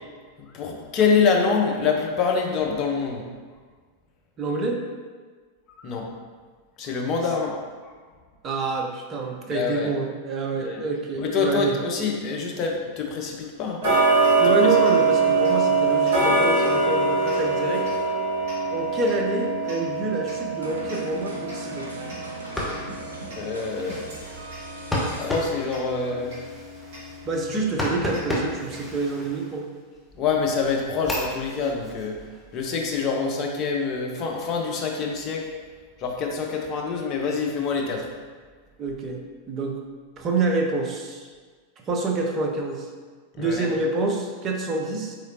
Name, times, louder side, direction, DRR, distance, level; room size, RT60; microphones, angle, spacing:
voice 1, 0.4-3.3 5.8-6.1 6.8-7.6 7.8-7.9 9.5-9.9 10.6-10.8 11.2-13.8 14.4-14.8 23.4-24.0 25.0-26.3 30.1-32.2 32.5-35.5 36.0-38.1 43.3-43.7, left 5 dB, 35° left, 0 dB, 0.6 m, -26 dB
voice 2, 4.4-4.8 8.4-11.8 14.4-17.8 18.7-21.9 27.3-29.6 38.8-39.2 39.5-39.8 40.2-41.3 41.9-42.9 43.4-45.2, right 3 dB, 30° right, 1 dB, 0.5 m, -27 dB
Tick-tock, 13.8-24.7 25.1-25.2 25.7-25.8 26.3-26.4 26.9-27.0 27.5-27.6 28.1-28.2 28.7-28.8, right 4 dB, 50° right, 1.5 m, -23 dB
sound 1, 20.6-26.3, right 1 dB, 80° right, 0.6 m, -40 dB
sound 2, 22.3-30.0 30.4-33.1, left 1 dB, 5° left, 0.8 m, -34 dB
3.9 x 3.1 x 2.6 m, 1.5 s
figure-of-eight pair, 90°, 0 cm